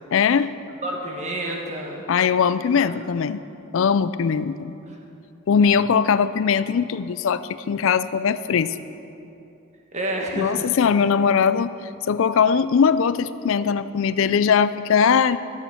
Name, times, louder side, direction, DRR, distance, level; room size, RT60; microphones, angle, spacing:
voice 1, 0.1-0.5 2.1-3.4 3.7-4.7 5.5-8.8 10.3-11.7 12.1-15.4, left 6 dB, 60° left, 14 dB, 0.4 m, -20 dB
voice 2, 0.8-2.0 4.9-5.0 9.9-10.7, right 1 dB, 30° right, 0 dB, 1.5 m, -29 dB
13.5 x 8.2 x 5.7 m, 2.8 s
head